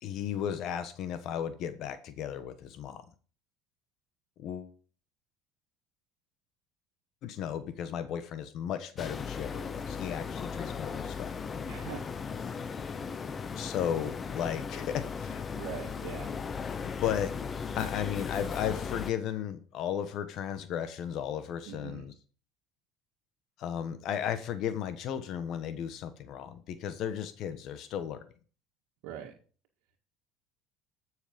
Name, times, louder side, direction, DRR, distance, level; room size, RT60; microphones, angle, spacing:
voice 1, 0.0-3.0 4.4-4.7 7.2-11.3 13.5-15.4 16.8-17.3 17.7-22.1 23.6-28.3, left 9 dB, 60° left, 11 dB, 1.3 m, -35 dB
sound 1, 9.0-19.1, left 6 dB, 30° left, 0.9 m, -37 dB
voice 2, 11.6-12.1 15.5-16.3 21.7-22.0 29.0-29.3, right 9 dB, 80° right, 0 dB, 1.7 m, -41 dB
13.5 x 6.5 x 5.2 m, 0.39 s
supercardioid pair, 110°, 0 cm